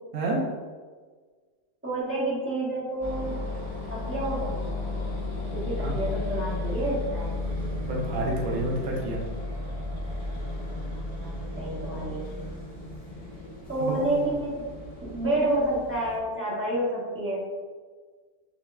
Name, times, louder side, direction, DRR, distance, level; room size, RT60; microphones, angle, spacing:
voice 1, 0.1-0.5 5.8-5.9 7.8-9.2 13.8-14.0 14.2-14.3, right 1 dB, 55° right, -2 dB, 1.1 m, -29 dB
voice 2, 1.8-3.4 3.9-4.8 5.5-7.4 10.7-12.2 13.7-14.6 15.0-17.5, right 1 dB, 10° right, -8 dB, 1.0 m, -29 dB
sound 1, 3.0-16.2, left 2 dB, 30° left, 0.7 m, -34 dB
6.4 x 2.8 x 2.3 m, 1.5 s
omnidirectional pair, 1.8 m